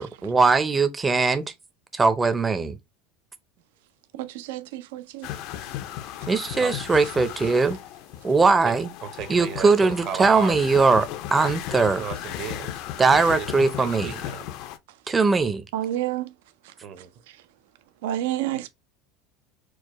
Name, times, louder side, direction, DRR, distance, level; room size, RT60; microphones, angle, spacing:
voice 1, 0.0-1.5 1.9-2.8 6.3-7.8 8.2-8.9 9.3-12.0 13.0-14.2 15.1-15.6, right 4 dB, 15° right, 0.5 m, -20 dB
voice 2, 4.1-5.6 14.9-15.0 15.7-16.3 16.6-17.4 18.0-18.7, right 13 dB, 80° right, 0.4 m, -31 dB
sound 1, 5.2-14.8, left 12 dB, 60° left, 0.4 m, -36 dB
voice 3, 8.4-8.8 9.0-10.6 11.7-13.5 13.7-14.5 16.8-17.1, right 8 dB, 45° right, 0.8 m, -35 dB
4.6 x 2.1 x 2.9 m
supercardioid pair, 130°, 0 cm